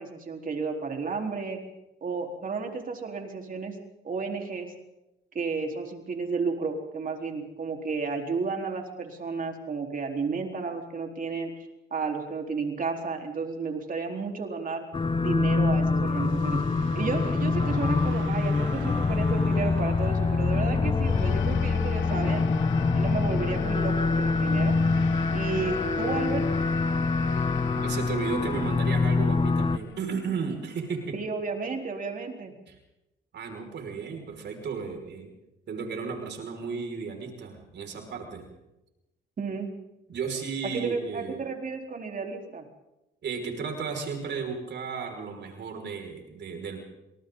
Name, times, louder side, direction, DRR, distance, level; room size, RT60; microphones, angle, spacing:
voice 1, 0.0-1.6 2.0-3.8 4.0-4.7 5.3-11.5 11.9-14.8 15.2-16.6 16.9-22.4 22.9-24.8 25.3-26.5 31.1-32.5 39.4-39.7 40.6-42.7, right 4 dB, 45° right, 2 dB, 4.3 m, -32 dB
sound 1, 14.9-29.8, left 3 dB, 25° left, 1.0 m, -25 dB
sound 2, 16.1-23.0, right 7 dB, 80° right, 3.7 m, -47 dB
sound 3, 20.9-31.5, left 11 dB, 75° left, 1.1 m, -43 dB
voice 2, 27.7-31.0 32.7-32.8 33.3-35.3 35.7-38.5 40.1-41.4 43.2-46.8, right 5 dB, 60° right, 3 dB, 5.9 m, -34 dB
29.0 x 26.5 x 4.0 m, 0.95 s
cardioid pair, 90°, 20 cm